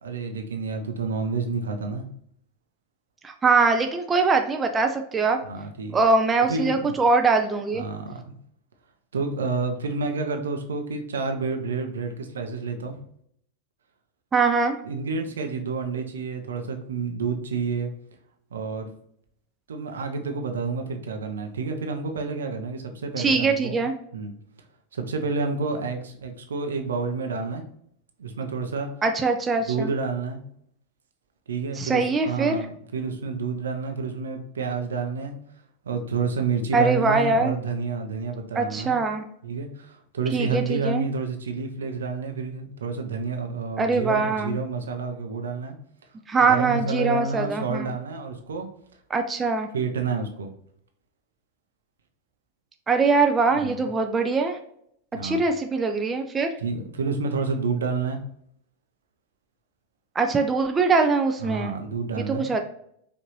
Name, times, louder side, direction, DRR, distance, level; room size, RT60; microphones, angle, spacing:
voice 1, 0.0-2.0 5.4-6.0 6.5-6.9 7.8-8.3 9.1-13.0 14.8-17.9 18.5-18.9 19.7-23.8 24.1-24.3 24.9-27.6 28.2-28.9 29.7-30.4 31.5-35.4 35.8-39.0 39.4-45.8 46.4-48.7 49.7-50.5 53.5-53.8 55.1-55.4 56.6-58.2 61.4-62.5, right 4 dB, 65° right, 4 dB, 0.6 m, -29 dB
voice 2, 3.2-5.4 5.9-7.8 14.3-14.8 23.2-23.9 29.0-29.9 31.8-32.6 36.7-37.5 38.6-39.2 40.3-41.1 43.8-44.6 46.3-47.9 49.1-49.7 52.9-54.6 55.2-56.5 60.2-61.7 62.2-62.6, right 4 dB, 15° right, 4 dB, 0.4 m, -22 dB
5.1 x 2.6 x 3.0 m, 0.69 s
figure-of-eight pair, 90°, 0 cm